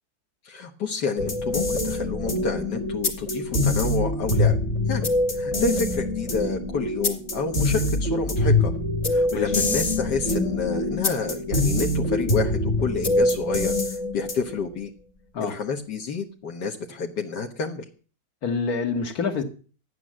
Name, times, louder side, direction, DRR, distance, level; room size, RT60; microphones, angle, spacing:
voice 1, 0.4-4.6 4.9-8.7 9.1-14.9 15.4-17.8, left 5 dB, 80° left, 2 dB, 2.1 m, -29 dB
sound 1, 1.2-14.6, left 2 dB, 40° left, 2.9 m, -24 dB
voice 2, 18.4-19.4, left 5 dB, 60° left, 6 dB, 2.4 m, -26 dB
14.0 x 9.9 x 7.6 m, 0.39 s
omnidirectional pair, 1.8 m